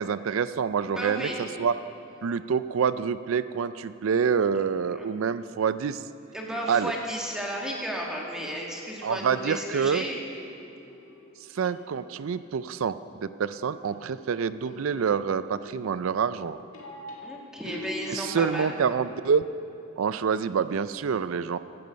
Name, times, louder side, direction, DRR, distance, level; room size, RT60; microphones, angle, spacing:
voice 1, 0.0-1.7 2.2-6.0 6.7-6.9 9.0-10.0 11.5-13.0 13.2-16.6 18.1-19.4 20.0-21.6, right 6 dB, 70° right, 14 dB, 0.4 m, -27 dB
voice 2, 0.8-1.5 5.0-5.1 6.3-10.2 17.2-18.7, equal, 5° right, -2 dB, 1.9 m, -33 dB
sound 1, 10.3-12.3 13.8-18.3, left 1 dB, 75° left, 2.4 m, -44 dB
15.5 x 12.5 x 5.2 m, 2.9 s
head